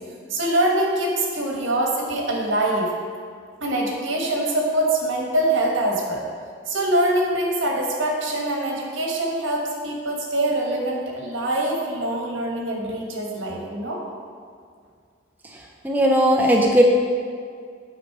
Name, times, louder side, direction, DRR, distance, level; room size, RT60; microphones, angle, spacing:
voice 1, 0.3-2.9 3.6-6.2 6.7-14.0, right 1 dB, 75° right, -1 dB, 1.2 m, -24 dB
voice 2, 15.8-16.8, equal, 10° right, -1 dB, 0.4 m, -17 dB
8.7 x 3.9 x 4.7 m, 2.1 s
head